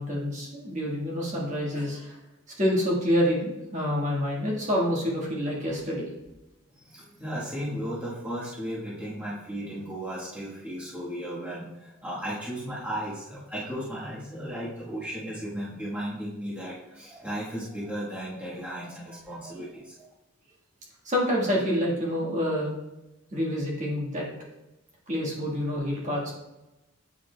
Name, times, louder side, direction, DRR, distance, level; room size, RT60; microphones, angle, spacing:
voice 1, 0.0-2.2 2.6-6.1 21.0-22.7 23.3-24.3 25.1-26.3, equal, 35° right, -4 dB, 1.5 m, -27 dB
voice 2, 6.7-20.1 25.5-25.6, equal, 10° right, -9 dB, 1.2 m, -35 dB
8.7 x 4.9 x 2.2 m, 0.97 s
head